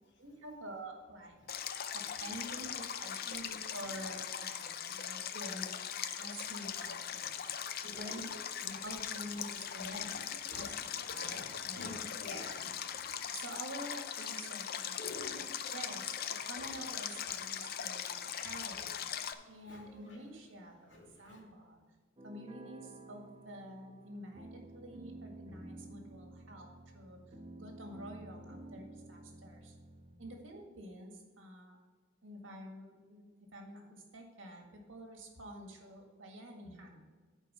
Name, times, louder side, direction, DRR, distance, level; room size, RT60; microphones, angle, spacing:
voice 1, 0.2-1.4 1.9-5.8 6.2-7.5 7.8-10.7 11.0-11.9 13.0-15.5 15.7-16.2 16.5-21.8 22.2-29.7 30.2-31.8 32.2-37.1, right 1 dB, 80° right, 2 dB, 1.9 m, -48 dB
Stream, 1.5-19.3, left 9 dB, 50° left, 0.5 m, -40 dB
voice 2, 7.9-8.2 9.9-10.2 10.5-13.4 15.0-15.7 16.4-16.8 18.2-18.9 19.2-20.2 20.9-21.4, left 1 dB, 70° left, -2 dB, 2.6 m, -50 dB
sound 1, 22.2-30.2, right 2 dB, 30° right, 1.0 m, -52 dB
10.0 x 4.6 x 6.1 m, 1.4 s
head